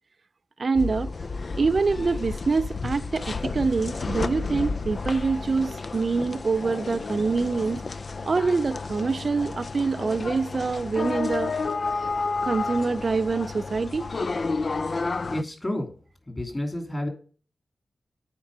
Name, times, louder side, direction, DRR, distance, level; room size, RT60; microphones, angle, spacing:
voice 1, 0.6-1.1 1.5-7.8 8.2-11.5 12.4-14.1, right 4 dB, 55° right, 0.4 m, -25 dB
sound 1, 0.7-15.4, left 4 dB, 55° left, 0.4 m, -31 dB
voice 2, 15.3-15.9 16.3-17.1, left 1 dB, 25° left, 2.8 m, -30 dB
8.7 x 4.4 x 5.2 m
cardioid pair, 65°, 0 cm